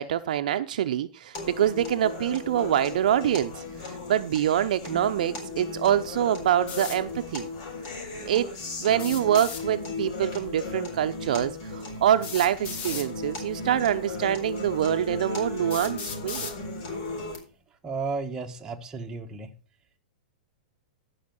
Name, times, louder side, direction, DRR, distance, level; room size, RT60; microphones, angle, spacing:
voice 1, 0.0-3.5 3.8-7.5 8.3-8.5 8.8-16.5, right 10 dB, 70° right, 0.8 m, -25 dB
sound 1, 1.3-17.4, left 3 dB, 50° left, 5.6 m, -36 dB
sound 2, 6.7-7.0 8.9-9.6 11.1-11.2 12.2-13.1 14.1-14.2 14.9-15.0 15.7-16.6, left 6 dB, 30° left, 1.5 m, -36 dB
voice 2, 17.8-19.5, right 4 dB, 15° right, 1.3 m, -33 dB
14.0 x 5.8 x 5.4 m
hypercardioid pair, 150°, 5 cm